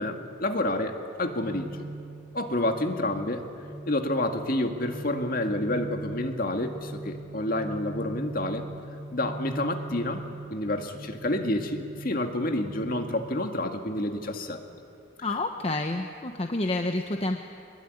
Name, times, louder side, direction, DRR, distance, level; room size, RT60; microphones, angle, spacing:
voice 1, 0.0-1.8 2.3-3.5 3.9-8.6 9.1-14.6, left 1 dB, 50° left, 5 dB, 2.1 m, -29 dB
sound 1, 1.3-14.4, right 2 dB, 30° right, 1.6 m, -41 dB
voice 2, 15.2-17.4, left 2 dB, 30° left, 5 dB, 1.0 m, -29 dB
24.0 x 21.5 x 9.8 m, 2.6 s
head